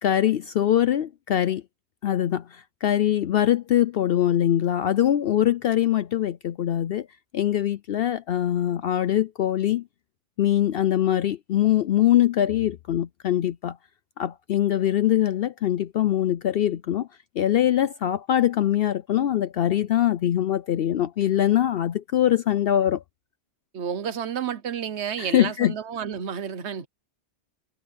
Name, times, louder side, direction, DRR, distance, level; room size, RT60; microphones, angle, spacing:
voice 1, 0.0-1.6 2.0-7.1 7.3-9.8 10.4-13.8 14.2-17.1 17.4-23.0 25.2-25.7, left 11 dB, 60° left, 0.7 m, -23 dB
voice 2, 23.7-26.9, right 8 dB, 65° right, 1.3 m, -31 dB
omnidirectional pair, 1.2 m